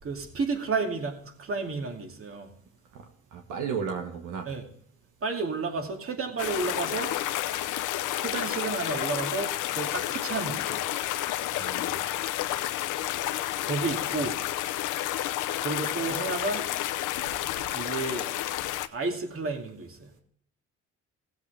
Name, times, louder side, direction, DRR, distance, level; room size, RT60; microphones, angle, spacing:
voice 1, 0.0-2.5 4.5-4.6 5.2-7.1 8.2-10.8 13.6-14.4 15.6-16.7 17.7-18.3 18.9-20.1, right 4 dB, 45° right, 3 dB, 2.4 m, -31 dB
voice 2, 3.3-4.5 11.5-12.1, right 6 dB, 85° right, 3 dB, 1.6 m, -34 dB
sound 1, 6.4-18.9, left 13 dB, 90° left, 0.7 m, -30 dB
16.5 x 8.0 x 3.4 m, 0.65 s
cardioid pair, 90°, 30 cm